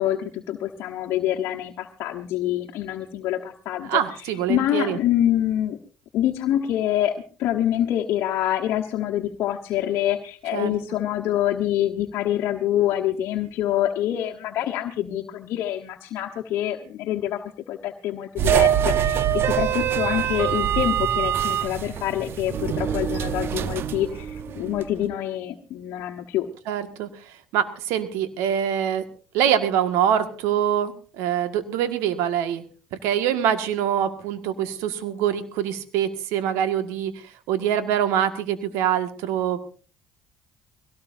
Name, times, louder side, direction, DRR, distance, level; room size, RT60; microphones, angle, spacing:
voice 1, 0.0-4.0 4.5-5.8 6.1-26.5, left 12 dB, 65° left, 1 dB, 1.2 m, -26 dB
voice 2, 3.9-5.0 10.5-10.8 26.7-27.1 27.5-29.0 29.3-32.6 33.0-37.2 37.5-39.7, right 9 dB, 75° right, 9 dB, 1.9 m, -24 dB
sound 1, 18.4-24.9, right 10 dB, 55° right, 1.0 m, -24 dB
22.0 x 17.5 x 2.7 m, 0.38 s
hypercardioid pair, 65°, 5 cm